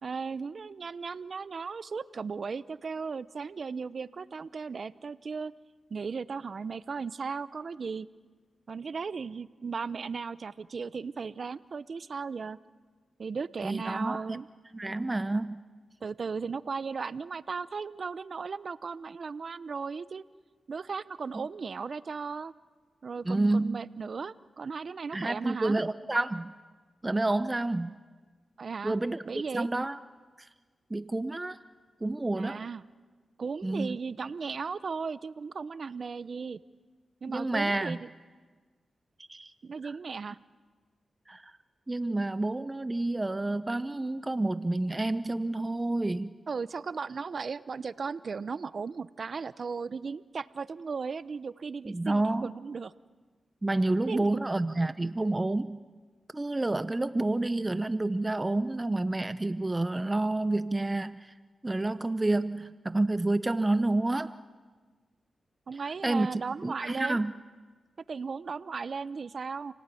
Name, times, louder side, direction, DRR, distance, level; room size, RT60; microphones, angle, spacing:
voice 1, 0.0-5.5 5.9-8.1 8.7-12.6 13.2-14.5 16.0-20.2 20.7-22.5 23.0-25.8 28.6-28.9 29.3-29.7 32.4-32.8 33.4-36.6 37.2-38.1 39.6-40.4 46.5-52.9 54.0-54.3 65.7-67.2 68.1-69.7, right 5 dB, 60° right, 16 dB, 0.8 m, -36 dB
voice 2, 13.6-14.4 14.7-15.6 21.3-21.5 23.2-23.8 25.1-26.5 27.0-28.0 28.8-29.2 29.5-30.0 30.4-30.5 30.9-31.6 32.0-32.7 33.6-34.0 37.3-38.0 39.3-39.5 39.8-40.0 41.3-41.5 41.9-46.3 51.9-52.5 53.6-55.8 56.3-61.3 61.6-64.3 65.7-67.3, right 2 dB, 25° right, 13 dB, 0.7 m, -29 dB
29.5 x 18.0 x 9.2 m, 1.4 s
cardioid pair, 55°, 0 cm